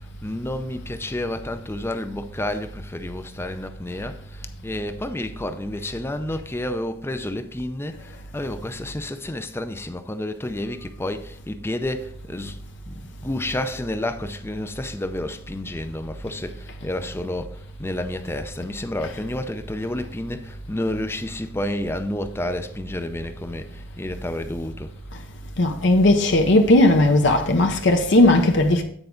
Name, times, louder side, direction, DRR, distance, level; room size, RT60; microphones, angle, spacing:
voice 1, 0.2-12.6 12.9-24.9, left 1 dB, 10° left, 0.5 m, -30 dB
voice 2, 25.6-28.8, left 1 dB, 65° left, 0.8 m, -17 dB
9.1 x 4.6 x 3.8 m
head